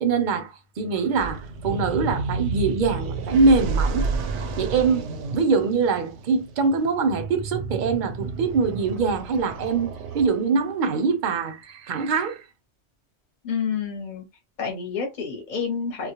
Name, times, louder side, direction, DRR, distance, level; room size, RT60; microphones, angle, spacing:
voice 1, 0.0-4.1 4.6-12.4, right 4 dB, 55° right, 0.6 m, -23 dB
sound 1, 1.1-10.7, right 4 dB, 90° right, 0.9 m, -31 dB
voice 2, 13.4-14.2 14.6-16.1, left 6 dB, 45° left, 0.8 m, -29 dB
2.2 x 2.1 x 2.8 m
omnidirectional pair, 1.2 m